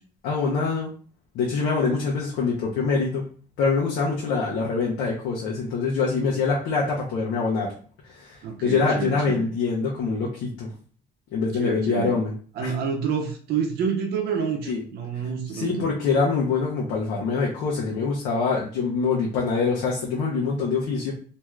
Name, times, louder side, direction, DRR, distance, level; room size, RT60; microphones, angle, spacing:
voice 1, 0.2-0.9 1.3-3.3 3.6-7.7 8.1-10.7 11.3-12.3 12.6-12.7 14.7-14.8 15.5-21.1, left 4 dB, 85° left, -3 dB, 0.7 m, -24 dB
voice 2, 8.4-9.5 11.5-12.2 12.6-15.9, right 6 dB, 70° right, 3 dB, 0.6 m, -28 dB
2.7 x 2.3 x 3.2 m, 0.42 s
cardioid pair, 110°, 17 cm